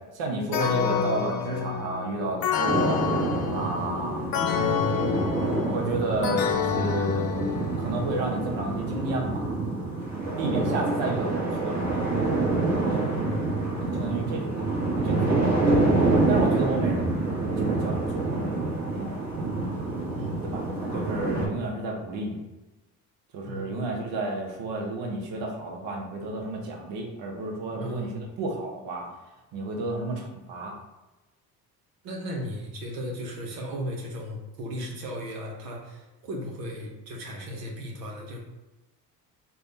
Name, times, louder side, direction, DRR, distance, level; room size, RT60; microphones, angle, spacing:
voice 1, 0.0-4.3 5.6-7.3 7.8-9.5 10.4-12.1 12.7-13.2 13.8-14.6 15.0-15.6 16.3-17.2 17.6-18.6 20.4-22.4 23.3-29.1 29.5-30.8, right 2 dB, 65° right, 0 dB, 1.1 m, -32 dB
sound 1, 0.5-8.2, left 7 dB, 45° left, 0.6 m, -28 dB
sound 2, 2.7-21.5, right 2 dB, 35° right, 1.4 m, -27 dB
voice 2, 10.5-10.8 13.1-13.5 20.2-20.6 23.4-23.8 27.7-28.2 32.0-38.4, equal, 90° right, 0 dB, 1.0 m, -36 dB
3.4 x 2.4 x 4.0 m, 1.0 s
hypercardioid pair, 60°, 48 cm